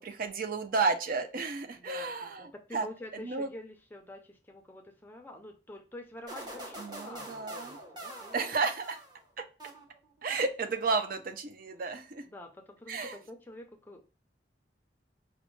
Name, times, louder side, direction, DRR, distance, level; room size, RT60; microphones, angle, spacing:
voice 1, 0.0-2.9 3.2-3.5 6.8-7.8 8.3-9.0 9.4-9.5 10.2-12.2 12.9-13.2, right 4 dB, 50° right, 7 dB, 0.5 m, -32 dB
voice 2, 1.8-8.5 12.3-14.0, left 1 dB, 10° left, 3 dB, 0.4 m, -47 dB
sound 1, 6.3-9.2 9.6-10.2, right 1 dB, 25° right, 0.9 m, -45 dB
5.0 x 2.1 x 3.0 m, 0.33 s
head